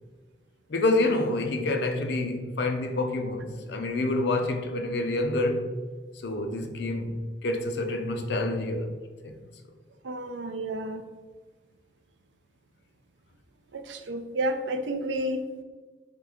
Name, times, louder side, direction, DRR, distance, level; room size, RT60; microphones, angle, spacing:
voice 1, 0.7-5.7 6.2-7.2 7.4-9.0 9.2-9.3, left 2 dB, 65° left, 0.5 m, -27 dB
voice 2, 10.0-11.0 13.7-15.4, right 1 dB, 80° right, 0.4 m, -31 dB
3.8 x 3.3 x 3.5 m
head